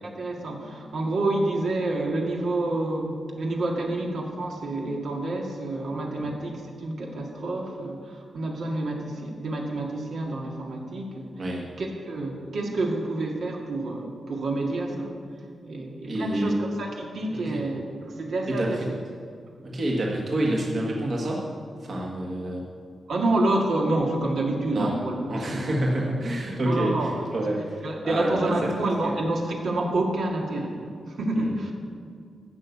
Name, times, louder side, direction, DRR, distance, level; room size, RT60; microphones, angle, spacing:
voice 1, 0.0-11.4 11.8-15.1 15.6-18.8 23.1-25.2 25.5-25.7 26.7-27.2 27.8-31.7, right 2 dB, 65° right, 0 dB, 1.9 m, -28 dB
voice 2, 16.1-16.6 17.3-17.6 18.5-18.7 19.6-21.5 21.8-22.6 24.7-24.9 25.3-27.8 28.0-28.7 29.0-29.1 31.4-31.5, right 1 dB, 45° right, -2 dB, 1.6 m, -27 dB
11.5 x 6.9 x 8.3 m, 2.3 s
wide cardioid pair, 145°, 0 cm